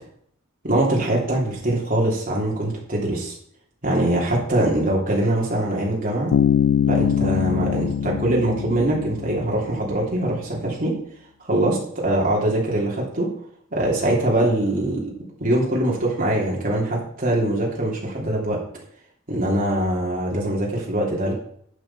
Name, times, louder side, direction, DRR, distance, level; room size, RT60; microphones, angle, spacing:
voice 1, 0.6-3.3 3.8-6.3 6.9-10.9 11.4-13.3 13.7-15.1 15.4-18.6 19.3-21.3, right 1 dB, 40° right, -3 dB, 3.2 m, -22 dB
Bass guitar, 6.3-10.0, left 8 dB, 70° left, 0.4 m, -23 dB
11.0 x 6.9 x 4.4 m, 0.65 s
head